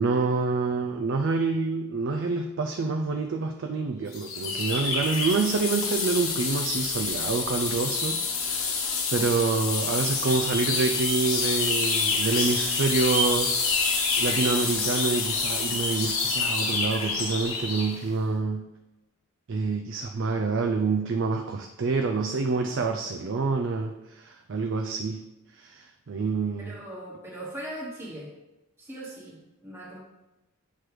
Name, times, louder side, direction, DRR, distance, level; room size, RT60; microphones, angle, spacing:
voice 1, 0.0-13.5 14.2-18.6 19.5-25.2 25.5-26.7, right 4 dB, 55° right, 4 dB, 0.4 m, -27 dB
sound 1, 4.1-18.0, left 4 dB, 60° left, 1.1 m, -27 dB
voice 2, 26.6-28.3 28.8-30.0, right 1 dB, 10° right, -5 dB, 1.1 m, -39 dB
7.6 x 3.2 x 4.8 m, 0.99 s
head